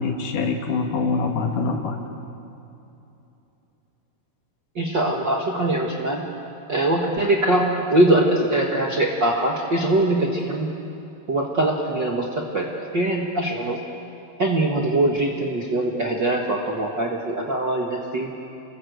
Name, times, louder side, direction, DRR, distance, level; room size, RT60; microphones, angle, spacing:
voice 1, 0.0-2.0, left 4 dB, 65° left, 3 dB, 3.1 m, -24 dB
voice 2, 4.7-6.2 6.7-10.7 11.3-13.8 14.4-18.3, right 1 dB, 45° right, -1 dB, 1.6 m, -22 dB
27.5 x 20.0 x 8.2 m, 2.9 s
omnidirectional pair, 4.2 m